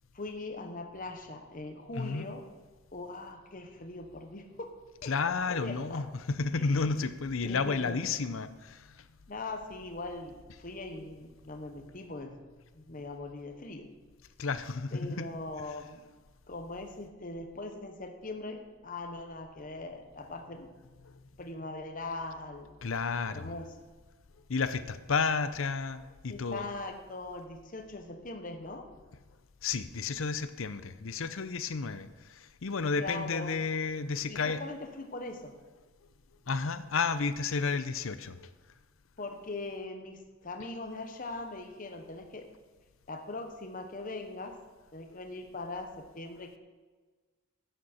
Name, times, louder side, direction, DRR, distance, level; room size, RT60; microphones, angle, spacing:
voice 1, 0.1-2.4 2.9-4.7 5.0-6.0 6.5-6.9 7.4-8.0 9.3-12.4 12.7-13.9 14.9-16.0 16.5-20.7 21.4-22.7 23.3-23.7 26.3-28.9 33.0-33.6 34.3-35.5 39.2-42.5 43.1-44.5 44.9-46.6, left 2 dB, 40° left, 4 dB, 1.0 m, -41 dB
voice 2, 1.9-2.3 5.0-9.0 14.4-15.3 21.0-21.1 22.8-23.5 24.5-26.6 29.6-34.6 36.5-38.5, left 4 dB, 65° left, 13 dB, 0.6 m, -32 dB
11.5 x 9.1 x 4.3 m, 1.3 s
head